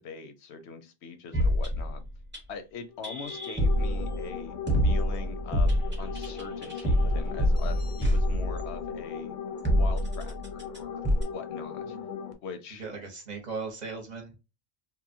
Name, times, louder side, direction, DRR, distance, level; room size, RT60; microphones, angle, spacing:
voice 1, 0.0-2.0 2.5-9.3 9.7-11.0 11.3-12.0 12.4-12.9, left 5 dB, 85° left, 9 dB, 0.9 m, -42 dB
sound 1, 1.3-2.4 3.0-4.3 4.7-8.8 9.6-10.8 11.0-11.2, equal, 10° right, 0.6 m, -26 dB
sound 2, 2.9-12.3, left 7 dB, 60° left, 0.6 m, -39 dB
voice 2, 12.8-14.4, right 4 dB, 45° right, 4 dB, 0.8 m, -37 dB
2.9 x 2.0 x 2.5 m, 0.26 s
omnidirectional pair, 1.1 m